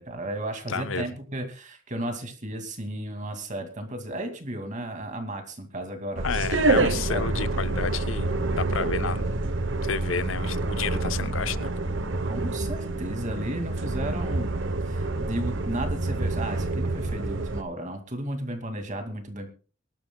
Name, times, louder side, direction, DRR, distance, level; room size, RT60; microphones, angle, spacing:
voice 1, 0.0-6.2 7.1-7.2 12.2-14.5 14.8-19.5, right 1 dB, 40° right, 2.4 m, -34 dB
voice 2, 0.7-1.1 6.2-9.3 9.8-11.7, left 5 dB, 75° left, 0.7 m, -31 dB
sound 1, 6.2-17.6, right 2 dB, 65° right, 1.0 m, -27 dB
24.0 x 12.0 x 2.3 m
head